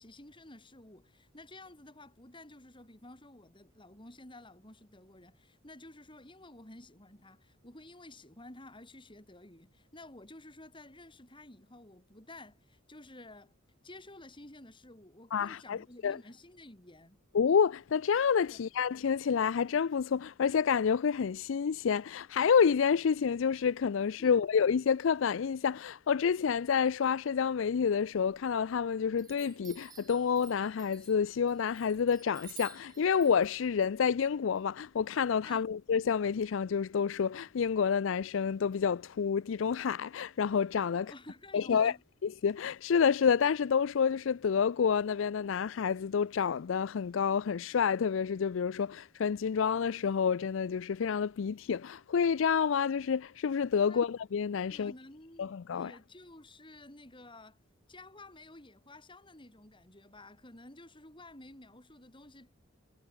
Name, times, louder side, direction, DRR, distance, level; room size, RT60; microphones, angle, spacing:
voice 1, 0.0-13.5 13.8-17.2 18.5-18.7 24.2-24.4 35.4-35.7 40.9-42.0 53.8-54.0 54.7-57.6 57.9-62.5, left 2 dB, 25° left, 4.5 m, -52 dB
voice 2, 15.3-16.2 17.3-41.1 41.5-41.9 42.4-54.9 55.4-55.9, left 6 dB, 70° left, 0.4 m, -29 dB
Chime, 28.1-28.8 29.2-35.0, right 7 dB, 20° right, 1.5 m, -54 dB
head